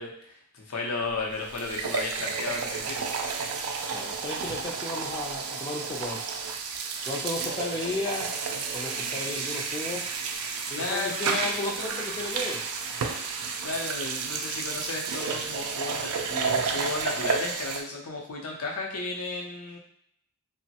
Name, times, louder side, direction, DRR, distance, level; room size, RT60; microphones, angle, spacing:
voice 1, 0.0-3.1 10.7-12.0 13.6-19.8, left 3 dB, 75° left, -1 dB, 0.7 m, -34 dB
sound 1, 1.1-1.2 1.5-17.8, right 5 dB, 75° right, 0.4 m, -31 dB
voice 2, 3.9-6.2 7.1-8.3 8.7-10.0 10.7-12.6, left 2 dB, 20° left, -1 dB, 0.4 m, -34 dB
3.0 x 2.1 x 2.8 m, 0.69 s
head